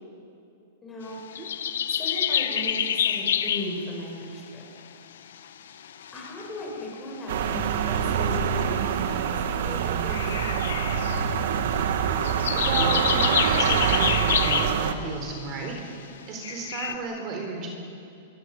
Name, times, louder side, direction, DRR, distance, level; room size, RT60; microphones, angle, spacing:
voice 1, 0.8-1.2 1.9-4.6 6.1-11.0, left 1 dB, 15° left, -2 dB, 7.7 m, -37 dB
sound 1, 1.3-3.8 5.3-5.4 5.7-6.6 8.6-8.7 10.1-11.5 12.1-14.9 15.8-16.0 16.4-16.9, left 9 dB, 85° left, 1.6 m, -27 dB
sound 2, 7.3-14.9, right 8 dB, 65° right, 2.0 m, -25 dB
voice 2, 12.5-17.7, right 3 dB, 30° right, 2 dB, 4.2 m, -33 dB
26.5 x 22.5 x 8.3 m, 2.5 s
supercardioid pair, 155°, 0 cm